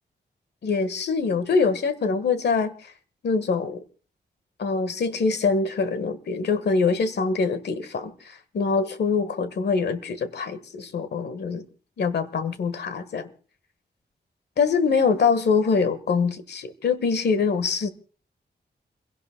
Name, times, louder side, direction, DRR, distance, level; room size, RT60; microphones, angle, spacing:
voice 1, 0.6-2.9 3.2-3.8 4.6-11.7 12.0-13.3 14.6-17.9, left 5 dB, 85° left, 1.4 m, -24 dB
29.0 x 17.0 x 2.2 m
wide cardioid pair, 140°, 17 cm